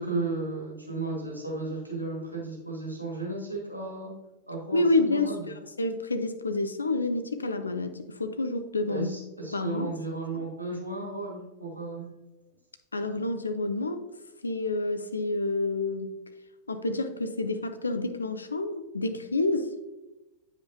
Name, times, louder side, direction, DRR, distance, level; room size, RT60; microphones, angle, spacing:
voice 1, 0.0-4.1 4.5-4.8 5.1-5.5 8.9-12.0, right 2 dB, 85° right, -3 dB, 1.7 m, -34 dB
voice 2, 4.7-9.1 9.4-9.9 12.9-14.1 14.4-16.1 16.7-19.8, left 2 dB, 75° left, 9 dB, 0.5 m, -28 dB
8.3 x 5.1 x 2.7 m, 1.0 s
figure-of-eight pair, 90°, 0 cm